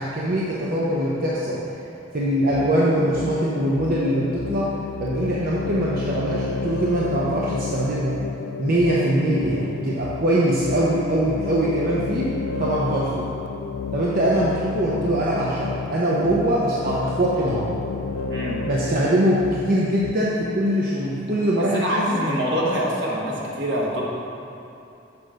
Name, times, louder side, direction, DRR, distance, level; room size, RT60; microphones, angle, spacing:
voice 1, 0.0-1.6 2.1-4.7 5.0-8.2 8.6-12.3 12.6-13.3 13.9-17.7 18.6-22.2, right 1 dB, 50° right, -6 dB, 0.9 m, -22 dB
sound 1, 2.5-20.1, left 5 dB, 90° left, 0.4 m, -31 dB
voice 2, 18.3-18.6 21.7-24.1, equal, 70° right, -4 dB, 1.5 m, -25 dB
7.0 x 5.0 x 6.5 m, 2.8 s
head